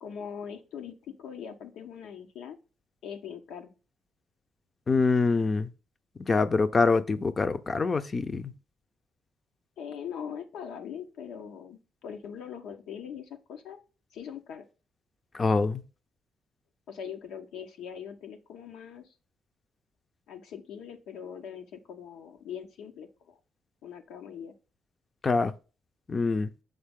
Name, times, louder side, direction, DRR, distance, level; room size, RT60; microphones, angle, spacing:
voice 1, 0.0-2.6 3.0-3.7 9.8-13.8 14.1-14.6 16.9-19.1 20.3-23.4 23.8-24.5, left 8 dB, 85° left, 0.8 m, -41 dB
voice 2, 4.9-5.7 6.2-8.5 15.3-15.8 25.2-25.5 26.1-26.5, left 4 dB, 35° left, 0.5 m, -25 dB
6.6 x 4.0 x 3.6 m
cardioid pair, 90°, 0 cm